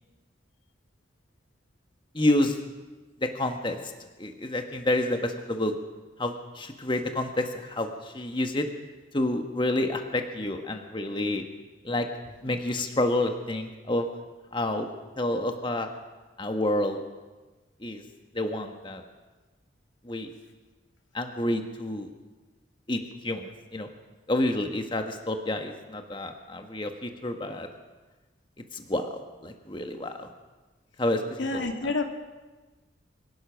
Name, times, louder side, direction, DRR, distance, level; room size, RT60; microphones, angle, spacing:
voice 1, 2.1-2.6 3.2-3.8 4.2-5.7 6.2-8.7 9.1-11.4 11.8-12.1 12.4-14.0 14.5-14.9 15.2-15.9 16.4-17.0 17.8-18.0 18.3-19.0 20.0-20.3 21.1-22.1 22.9-23.9 24.3-27.7 28.7-30.3 31.0-31.9, left 1 dB, 25° left, 5 dB, 1.5 m, -29 dB
voice 2, 31.4-32.0, left 3 dB, 90° left, 5 dB, 2.3 m, -28 dB
24.5 x 17.5 x 6.3 m, 1.2 s
head